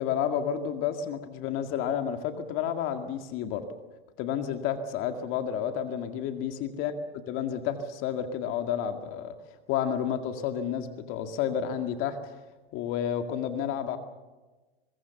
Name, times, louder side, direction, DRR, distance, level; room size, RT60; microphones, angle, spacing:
voice 1, 0.0-3.6 4.2-6.9 7.3-9.3 9.7-12.2 12.7-14.0, left 9 dB, 45° left, 6 dB, 2.1 m, -30 dB
23.0 x 22.0 x 7.1 m, 1.2 s
hypercardioid pair, 125°, 30 cm